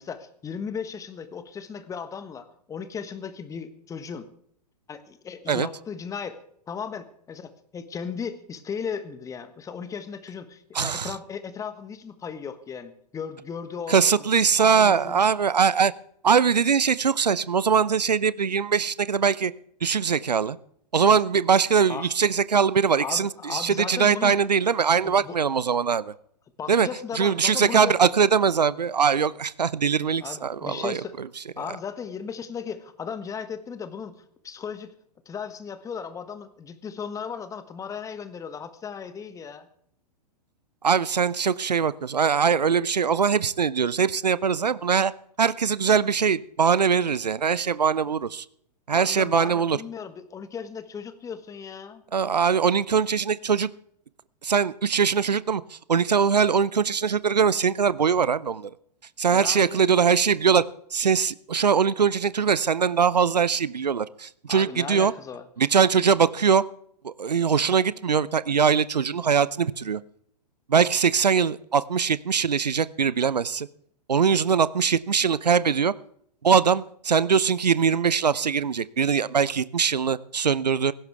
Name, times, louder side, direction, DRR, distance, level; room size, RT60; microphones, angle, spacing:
voice 1, 0.0-4.3 4.9-14.2 14.6-15.2 21.9-22.1 23.0-24.4 25.0-25.4 26.6-28.1 30.2-31.2 31.6-34.9 35.2-39.7 48.9-52.0 59.3-59.8 64.5-65.5, left 6 dB, 15° left, 12 dB, 1.4 m, -36 dB
voice 2, 10.7-11.1 13.9-15.9 16.2-19.5 19.8-20.6 20.9-26.1 26.7-26.9 27.1-31.3 40.8-45.1 45.4-48.4 48.9-49.8 52.1-53.7 54.4-58.7 59.2-60.6 60.9-65.1 65.6-66.6 67.0-70.0 70.7-73.7 74.1-75.9 76.4-80.9, right 6 dB, 75° right, 19 dB, 0.7 m, -22 dB
17.5 x 15.5 x 3.5 m, 0.68 s
figure-of-eight pair, 105°, 21 cm